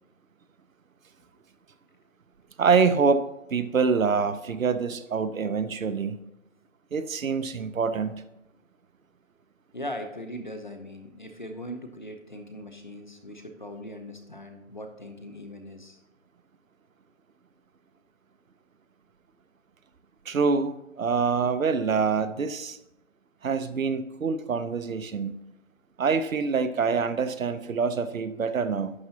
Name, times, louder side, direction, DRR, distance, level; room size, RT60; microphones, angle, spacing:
voice 1, 2.6-6.2 6.9-8.2 20.3-22.8 23.4-25.3 26.0-28.9, right 5 dB, 75° right, 12 dB, 0.8 m, -25 dB
voice 2, 9.7-16.0, equal, 35° left, 6 dB, 0.7 m, -40 dB
11.5 x 7.3 x 2.8 m, 0.89 s
hypercardioid pair, 175°, 41 cm